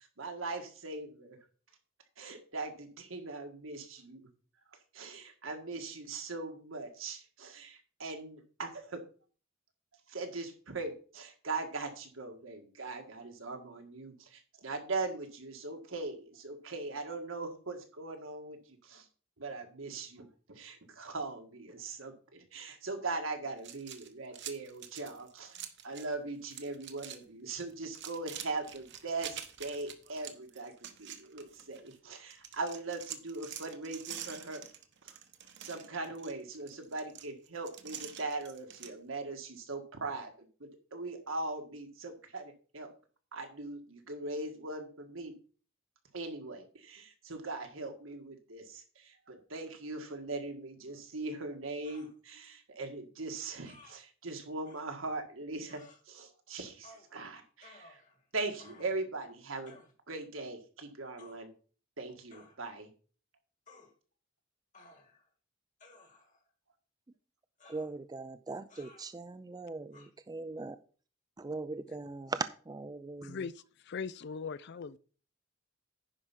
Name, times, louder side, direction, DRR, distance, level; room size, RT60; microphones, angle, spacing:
voice 1, 0.2-1.4 2.2-4.3 4.9-9.0 10.1-19.1 19.4-34.6 35.0-35.2 35.6-42.9 43.3-45.3 46.1-58.0 58.3-59.8 60.1-61.5 62.0-62.9, right 3 dB, 80° right, 1.7 m, -40 dB
sound 1, 23.6-26.1 26.4-27.2 27.5-31.9 32.3-38.9, right 10 dB, 60° right, 1.1 m, -46 dB
sound 2, 51.8-52.1 53.6-54.0 54.6-54.8 55.7-56.0 56.8-57.1 57.6-58.2 58.6-59.0 59.7-59.9 61.2-61.4 62.3-62.6 63.7-63.9 64.7-65.3 65.8-66.4 67.6-67.9 68.7-69.1 69.9-70.1, left 2 dB, 40° left, 1.9 m, -57 dB
voice 2, 67.6-70.8 71.4-73.5, right 3 dB, 20° right, 0.4 m, -40 dB
voice 3, 73.2-73.5 73.8-75.0, left 5 dB, 60° left, 0.4 m, -39 dB
10.0 x 4.7 x 5.7 m
head